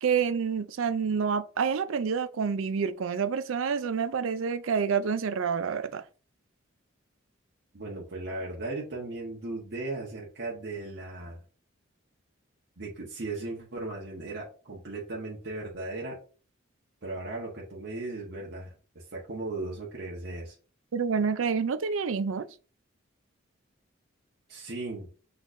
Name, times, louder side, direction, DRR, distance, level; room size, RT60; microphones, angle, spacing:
voice 1, 0.0-6.0 20.9-22.5, right 6 dB, 85° right, 0.4 m, -28 dB
voice 2, 7.7-11.4 12.8-16.2 17.0-20.5 24.5-25.1, right 2 dB, 55° right, 1.2 m, -37 dB
6.2 x 3.3 x 2.5 m
head